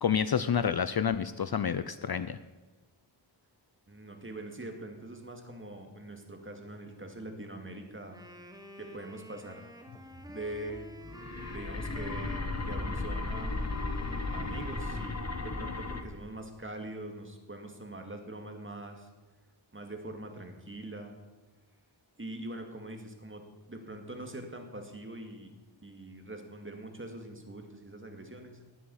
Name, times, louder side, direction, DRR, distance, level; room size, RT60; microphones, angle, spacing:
voice 1, 0.0-2.4, left 7 dB, 50° left, 13 dB, 0.6 m, -29 dB
voice 2, 3.9-8.2 8.8-9.6 10.3-10.9 11.5-13.6 14.3-15.2 15.4-19.1 19.7-21.2 22.2-25.5 25.8-28.6, right 1 dB, 25° right, 4 dB, 2.1 m, -43 dB
Wind instrument woodwind instrument, 8.0-15.7, left 1 dB, 10° right, 1.4 m, -50 dB
sound 1, 9.9-16.2, equal, 15° left, 3.0 m, -58 dB
sound 2, 11.0-16.0, left 3 dB, 30° left, 1.5 m, -35 dB
19.5 x 7.3 x 7.1 m, 1.2 s
wide cardioid pair, 105°, 49 cm